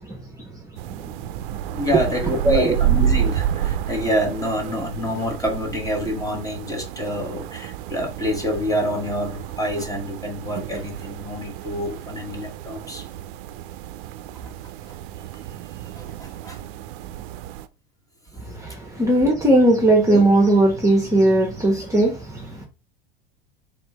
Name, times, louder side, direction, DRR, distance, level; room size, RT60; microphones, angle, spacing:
sound 1, 0.8-17.7, right 11 dB, 60° right, 0.6 m, -29 dB
voice 1, 1.7-13.0 14.4-14.5 15.9-16.6 18.6-18.7, left 1 dB, 10° left, 1.4 m, -27 dB
voice 2, 2.4-2.8 18.5-22.7, right 1 dB, 10° right, 1.1 m, -18 dB
4.2 x 3.6 x 3.5 m
hypercardioid pair, 95°, 30 cm